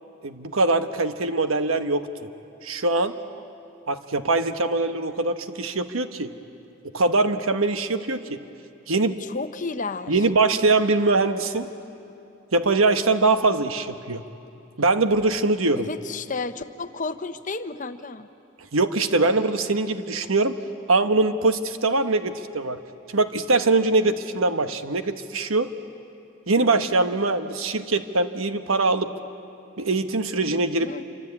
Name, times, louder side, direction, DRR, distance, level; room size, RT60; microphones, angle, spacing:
voice 1, 0.2-2.3 2.6-3.2 3.9-6.3 6.9-8.4 8.9-9.2 10.1-11.7 12.5-14.2 14.8-15.9 18.7-20.6 20.9-22.8 23.1-25.7 26.5-29.1 29.8-30.9, right 3 dB, 90° right, 9 dB, 1.2 m, -22 dB
voice 2, 9.2-10.2 15.8-18.3 30.8-31.0, left 3 dB, 40° left, 10 dB, 0.9 m, -32 dB
27.5 x 25.5 x 8.6 m, 2.6 s
head